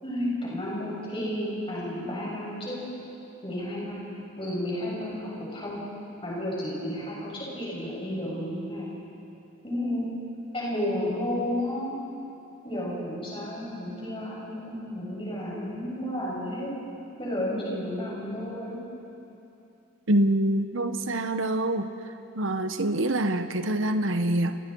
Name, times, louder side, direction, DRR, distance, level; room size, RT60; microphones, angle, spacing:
voice 1, 0.0-2.8 3.4-4.0 4.4-5.8 6.2-9.0 9.6-10.2 10.5-12.0 12.6-16.7 17.2-18.8, left 1 dB, 25° left, -6 dB, 7.6 m, -32 dB
voice 2, 20.1-21.9 22.4-24.6, right 1 dB, 65° right, 8 dB, 1.0 m, -25 dB
29.0 x 28.5 x 4.7 m, 2.8 s
head